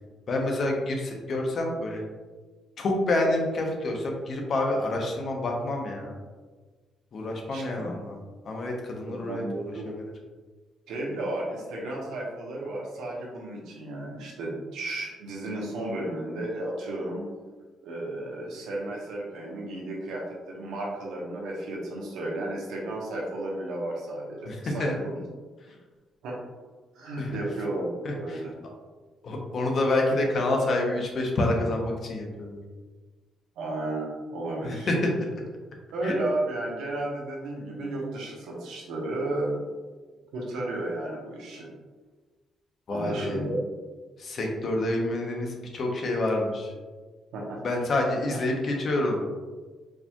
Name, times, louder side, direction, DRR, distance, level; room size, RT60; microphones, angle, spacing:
voice 1, 0.3-2.0 2.8-6.2 7.1-8.2 8.4-9.4 9.9-10.0 24.5-24.9 27.2-27.4 28.0-28.4 29.2-32.6 34.6-35.3 36.0-36.1 42.9-43.4 44.2-46.7 47.6-49.2, left 2 dB, 55° left, 1 dB, 0.8 m, -28 dB
voice 2, 7.5-7.9 9.3-9.9 10.9-17.3 17.8-25.2 26.2-26.4 26.9-28.5 33.6-34.9 35.9-39.6 40.3-41.7 42.9-43.6 47.3-47.6 48.3-48.4, right 1 dB, 90° right, -3 dB, 0.9 m, -33 dB
4.7 x 2.8 x 2.3 m, 1.3 s
cardioid pair, 90°, 0 cm